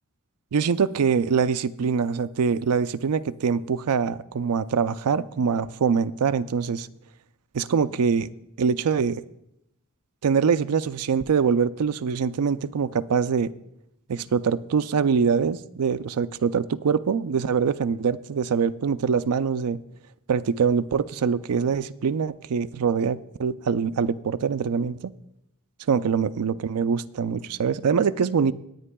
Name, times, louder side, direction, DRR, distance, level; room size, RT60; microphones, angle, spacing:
voice 1, 0.5-6.9 7.5-8.3 8.6-9.2 10.2-13.5 14.1-19.8 20.3-25.1 25.9-28.5, right 6 dB, 85° right, 13 dB, 0.4 m, -24 dB
21.0 x 9.3 x 2.3 m, 0.81 s
head